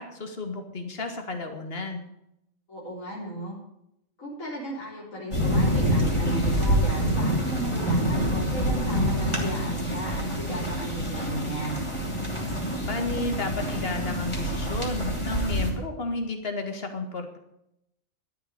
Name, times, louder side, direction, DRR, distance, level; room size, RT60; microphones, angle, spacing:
voice 1, 0.0-2.1 12.8-17.4, left 2 dB, 45° left, 5 dB, 2.1 m, -32 dB
voice 2, 2.7-3.6 4.2-11.8, right 1 dB, 80° left, -6 dB, 4.4 m, -35 dB
sound 1, 5.3-15.7, equal, 20° left, 3.1 m, -26 dB
12.5 x 7.8 x 9.6 m, 0.82 s
omnidirectional pair, 1.4 m